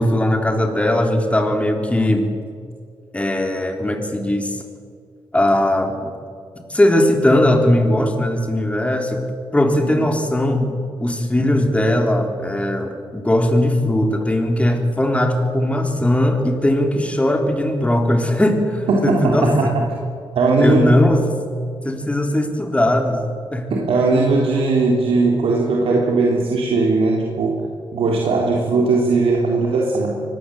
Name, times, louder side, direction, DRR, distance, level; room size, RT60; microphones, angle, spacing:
voice 1, 0.0-2.3 3.1-4.5 5.3-6.0 6.7-9.2 9.5-19.7 20.6-21.2 21.8-23.2 23.5-23.7, left 1 dB, 15° left, 4 dB, 3.7 m, -19 dB
voice 2, 18.9-19.8 20.4-20.9 23.7-27.6 27.9-30.2, right 3 dB, 90° right, -2 dB, 3.6 m, -18 dB
24.5 x 20.0 x 8.0 m, 2.2 s
cardioid pair, 105°, 9 cm